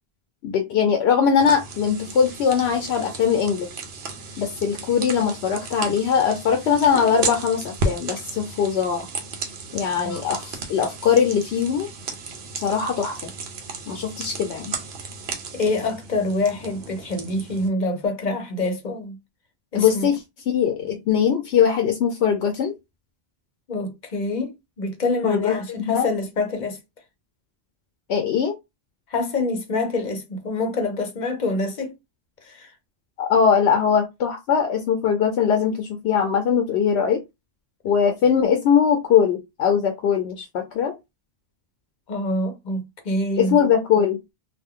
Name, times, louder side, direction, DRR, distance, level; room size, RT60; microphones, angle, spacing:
voice 1, 0.4-3.7 4.4-9.1 9.7-11.9 12.6-13.3 13.9-14.7 19.7-20.2 20.5-22.7 25.2-26.1 28.1-28.6 33.2-37.2 37.8-40.9 43.4-44.2, left 7 dB, 80° left, 0.8 m, -21 dB
sound 1, 1.4-17.7, right 3 dB, 75° right, 0.9 m, -34 dB
voice 2, 15.5-19.2 19.7-20.1 23.7-26.8 29.1-31.9 32.5-32.7 42.1-43.6, left 2 dB, 50° left, 0.7 m, -26 dB
2.5 x 2.2 x 3.6 m
omnidirectional pair, 1.1 m